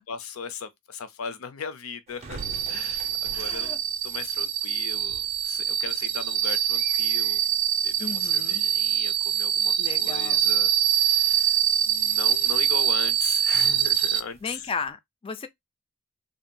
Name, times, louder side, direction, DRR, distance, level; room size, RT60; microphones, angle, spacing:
voice 1, 0.0-2.4 2.7-3.7 4.0-7.4 7.8-11.6 11.9-14.7, left 6 dB, 80° left, 0.5 m, -38 dB
sound 1, 2.1-14.9, right 2 dB, 30° right, 0.5 m, -49 dB
sound 2, 2.4-14.2, right 9 dB, 85° right, 0.5 m, -24 dB
voice 2, 3.3-3.8 8.0-8.6 9.8-10.4 14.4-15.5, left 5 dB, 25° left, 0.3 m, -35 dB
2.7 x 2.2 x 2.5 m
head